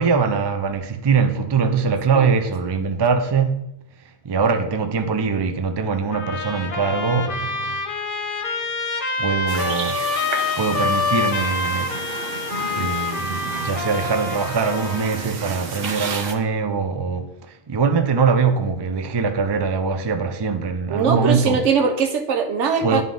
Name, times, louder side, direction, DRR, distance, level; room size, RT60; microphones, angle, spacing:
voice 1, 0.0-3.6 4.2-7.8 9.2-10.2 10.6-12.4 12.7-21.6 22.8-23.0, right 5 dB, 35° right, 0.4 m, -22 dB
Trumpet, 6.1-15.3, left 3 dB, 50° left, 1.0 m, -26 dB
sound 1, 9.5-16.3, right 5 dB, 55° right, 0.9 m, -32 dB
voice 2, 20.9-23.0, right 5 dB, 80° right, 1.1 m, -21 dB
10.5 x 3.6 x 3.8 m
omnidirectional pair, 1.2 m